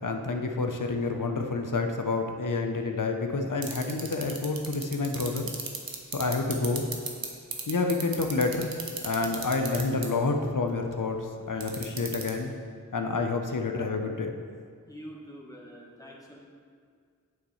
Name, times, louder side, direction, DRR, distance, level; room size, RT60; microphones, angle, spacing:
voice 1, 0.0-5.5 6.1-6.9 7.7-8.7 9.0-12.5 12.9-14.3, left 3 dB, 65° left, 4 dB, 0.8 m, -28 dB
sound 1, 3.6-7.2 7.5-10.0 11.6-12.3, right 6 dB, 90° right, 0.9 m, -33 dB
voice 2, 14.9-16.4, equal, 10° left, -4 dB, 1.3 m, -45 dB
8.6 x 7.0 x 3.2 m, 2.1 s
wide cardioid pair, 45°, 34 cm